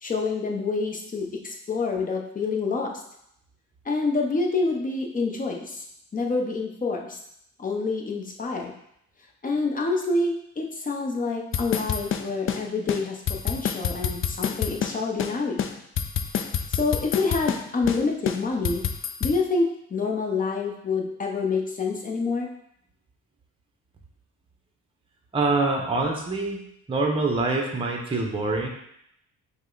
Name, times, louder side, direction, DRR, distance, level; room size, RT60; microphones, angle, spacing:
voice 1, 0.0-3.0 3.8-5.8 6.1-7.2 7.6-8.7 9.4-15.6 16.7-18.8 19.2-22.5, left 3 dB, 25° left, 0 dB, 0.8 m, -27 dB
sound 1, 11.5-12.6 12.9-13.0 13.3-14.9 15.2-15.3 15.6-17.6 17.9-18.0 18.3-19.4, left 8 dB, 45° left, 0.4 m, -27 dB
voice 2, 25.3-26.6 26.9-28.7, right 3 dB, 15° right, 1 dB, 0.8 m, -25 dB
5.3 x 2.2 x 3.9 m, 0.74 s
cardioid pair, 90°, 30 cm